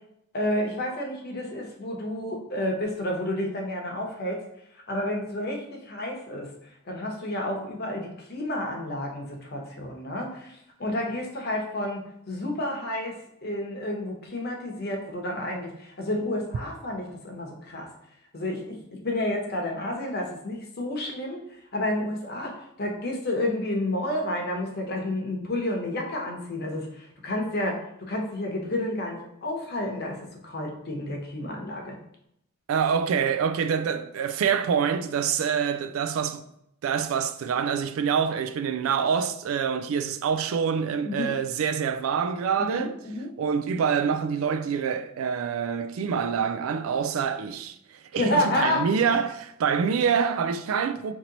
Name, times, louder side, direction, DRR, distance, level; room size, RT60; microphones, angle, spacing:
voice 1, 0.3-4.4 4.7-6.5 6.8-12.0 12.3-13.1 13.4-17.9 18.3-21.4 21.7-27.8 28.1-30.2 30.4-32.0 41.0-41.3 42.6-43.3 48.2-48.8 49.1-49.2, left 1 dB, 50° left, 0.9 m, -30 dB
voice 2, 32.7-36.4 36.8-42.9 43.4-49.4 49.6-51.1, right 7 dB, 85° right, 0.3 m, -26 dB
3.0 x 2.9 x 3.9 m
head